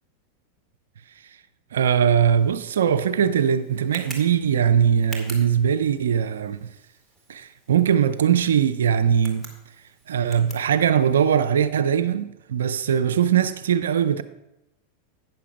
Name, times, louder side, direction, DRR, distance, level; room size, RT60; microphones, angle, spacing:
voice 1, 1.7-6.7 7.3-9.5 10.1-14.2, right 8 dB, 85° right, 0.4 m, -21 dB
Tick, 2.3-11.4, right 1 dB, 10° right, 2.2 m, -46 dB
9.1 x 6.8 x 5.1 m
hypercardioid pair, 105°, 0 cm